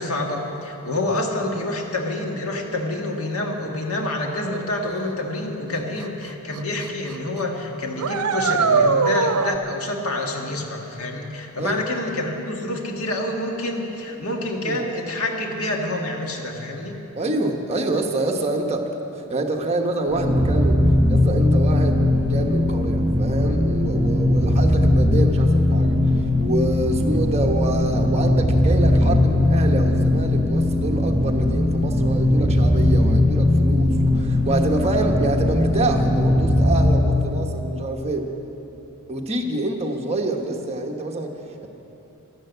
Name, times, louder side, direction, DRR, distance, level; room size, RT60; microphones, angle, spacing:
voice 1, 0.0-17.0, left 1 dB, 70° left, 1 dB, 1.7 m, -27 dB
sound 1, 6.0-6.1 6.6-6.8 7.1-7.2 8.0-9.6, right 5 dB, 90° right, 0.6 m, -20 dB
voice 2, 17.2-18.9 19.3-20.8 21.1-38.3 39.1-41.7, right 2 dB, 30° right, 2 dB, 1.2 m, -26 dB
sound 2, 20.1-37.1, left 1 dB, 5° right, 1.5 m, -19 dB
12.5 x 11.5 x 8.0 m, 3.0 s
head